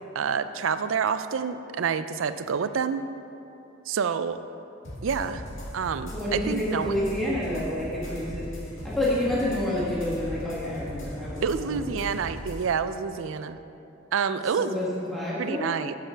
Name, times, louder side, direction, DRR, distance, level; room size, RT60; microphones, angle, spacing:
voice 1, 0.1-3.0 3.9-4.4 5.0-5.4 5.7-7.1 11.4-13.6 14.1-14.8 15.4-15.9, right 6 dB, 65° right, 12 dB, 0.4 m, -28 dB
sound 1, 4.8-12.6, equal, 65° left, 2.0 m, -38 dB
voice 2, 6.1-8.5 8.8-11.7 14.6-15.7, left 1 dB, ahead, -9 dB, 1.6 m, -29 dB
9.1 x 6.8 x 5.6 m, 2.8 s
head